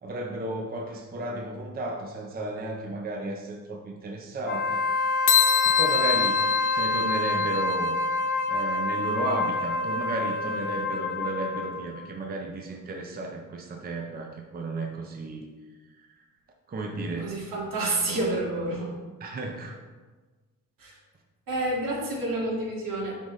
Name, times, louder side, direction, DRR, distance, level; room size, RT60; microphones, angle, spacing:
voice 1, 0.0-4.8 5.6-7.9 8.5-15.5 15.9-16.1 16.7-17.4 19.2-19.8, right 2 dB, 30° right, 1 dB, 0.5 m, -33 dB
Wind instrument woodwind instrument, 4.4-11.9, left 2 dB, 30° left, 0.4 m, -27 dB
sound 1, 5.3-7.9, left 9 dB, 65° left, 0.9 m, -25 dB
voice 2, 17.2-18.9 20.8-21.0 21.5-23.2, right 2 dB, 75° right, -4 dB, 2.0 m, -29 dB
10.0 x 3.7 x 3.1 m, 1.3 s
wide cardioid pair, 170°, 33 cm